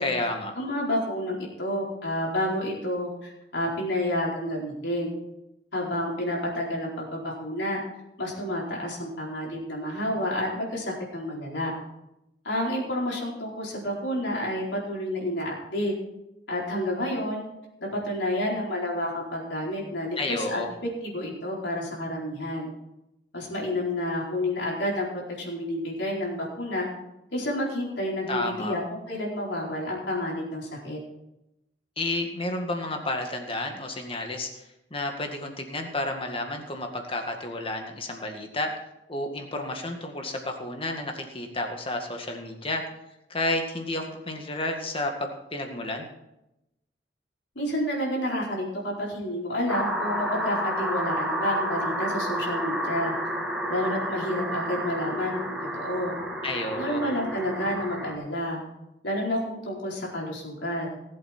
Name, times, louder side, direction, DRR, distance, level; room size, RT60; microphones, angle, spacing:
voice 1, 0.0-0.5 20.2-20.7 28.3-28.8 32.0-34.6 34.9-38.7 39.1-42.8 43.3-46.1 56.4-57.0, left 2 dB, 30° left, 4 dB, 1.9 m, -31 dB
voice 2, 0.6-5.1 5.7-7.8 8.2-11.7 12.4-15.9 16.5-17.4 17.8-20.6 21.0-22.7 23.3-25.1 25.4-26.9 27.3-28.8 29.1-31.0 47.5-53.1 53.7-56.2 56.8-58.6 59.0-60.9, left 1 dB, 75° left, -3 dB, 4.5 m, -29 dB
sound 1, 49.7-58.1, equal, 5° right, 1.7 m, -30 dB
19.0 x 8.1 x 4.4 m, 0.88 s
head